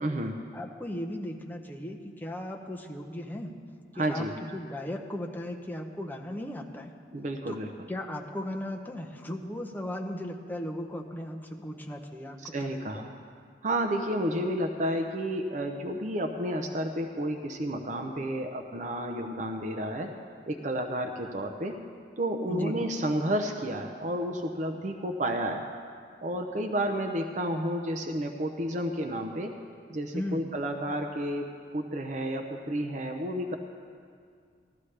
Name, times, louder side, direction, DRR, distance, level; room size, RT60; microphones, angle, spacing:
voice 1, 0.0-0.4 4.0-4.3 7.1-7.7 12.5-13.1 13.6-20.1 20.5-21.7 22.2-25.6 26.2-29.5 29.9-33.6, right 1 dB, 45° right, 4 dB, 0.6 m, -31 dB
voice 2, 0.5-3.5 3.9-4.3 4.5-6.9 7.5-7.6 7.9-13.0 22.5-22.8 30.1-30.5, left 1 dB, 10° left, 2 dB, 0.7 m, -36 dB
15.0 x 12.5 x 3.3 m, 2.2 s
head